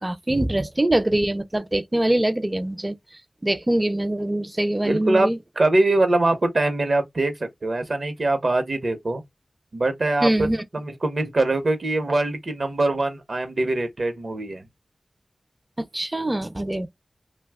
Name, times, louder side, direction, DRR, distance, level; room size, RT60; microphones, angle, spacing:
voice 1, 0.0-3.0 3.4-5.4 10.2-10.6 15.8-16.9, right 1 dB, 20° right, 0.4 m, -23 dB
voice 2, 4.8-9.2 9.7-10.5 10.7-14.7, right 2 dB, 60° right, 0.8 m, -23 dB
2.7 x 2.2 x 3.4 m
wide cardioid pair, 70°, 0 cm